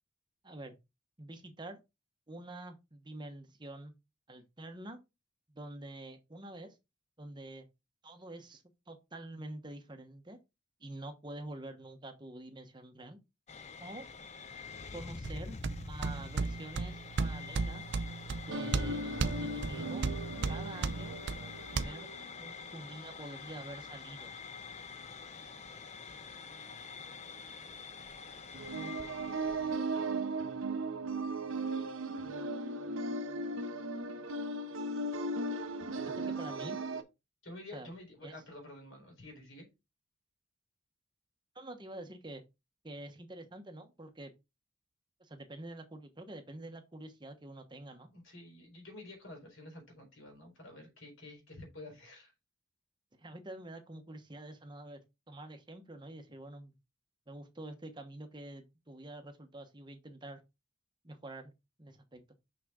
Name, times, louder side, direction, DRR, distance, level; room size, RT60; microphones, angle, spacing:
voice 1, 1.2-1.8 2.3-3.9 4.3-5.0 5.5-6.8 7.2-7.7 8.0-10.4 10.8-13.2 13.8-14.1 14.9-15.6 15.9-17.9 18.3-20.1 20.5-21.2 21.7-22.1 22.4-24.3 36.1-36.8 37.7-37.9 38.2-38.3 41.5-42.4 42.8-44.3 45.2-48.1 53.2-55.0 55.3-56.7 57.3-60.4 61.0-61.5 61.8-62.2, right 1 dB, 20° right, 1.0 m, -47 dB
sound 1, 13.5-29.8, left 5 dB, 35° left, 0.6 m, -47 dB
sound 2, 15.2-21.8, right 4 dB, 55° right, 0.5 m, -36 dB
sound 3, 18.5-22.6 28.5-37.0, right 2 dB, 80° right, 1.1 m, -37 dB
voice 2, 28.7-29.1 37.4-39.7 48.1-52.3, left 1 dB, 70° left, 4.1 m, -50 dB
6.2 x 5.9 x 3.7 m
head